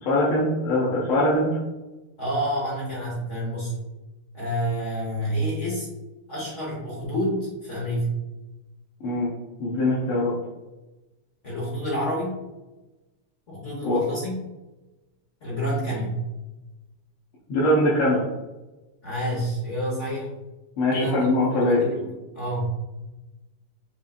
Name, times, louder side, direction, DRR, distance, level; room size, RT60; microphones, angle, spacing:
voice 1, 0.0-1.5 9.0-9.3 9.6-10.3 13.8-14.0 17.5-18.2 20.8-21.8, left 1 dB, 90° left, -8 dB, 1.8 m, -22 dB
voice 2, 2.2-3.7 4.3-5.9 6.3-8.2 11.4-12.4 13.5-14.4 15.4-16.2 19.0-20.3 20.9-22.6, equal, 55° left, -5 dB, 0.8 m, -28 dB
5.4 x 2.5 x 2.3 m, 1.1 s
omnidirectional pair, 2.3 m